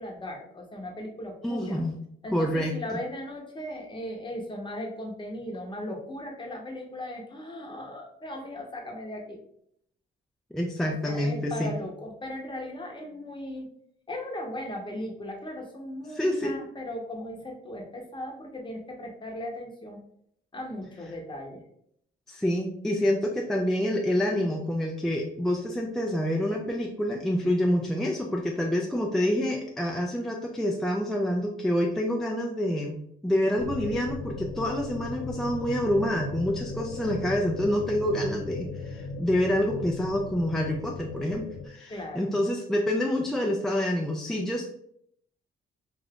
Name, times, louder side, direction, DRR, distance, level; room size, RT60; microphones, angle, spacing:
voice 1, 0.0-1.8 2.2-9.4 10.8-13.7 14.1-20.0 20.5-21.6 41.9-42.3, left 1 dB, 25° left, 1 dB, 0.8 m, -37 dB
voice 2, 1.4-1.9 2.3-2.8 10.5-11.7 16.1-16.6 22.3-44.7, left 1 dB, ahead, 0 dB, 0.3 m, -27 dB
sound 1, 33.6-41.7, left 3 dB, 70° left, 0.5 m, -37 dB
2.5 x 2.3 x 3.4 m, 0.70 s
cardioid pair, 90°, 20 cm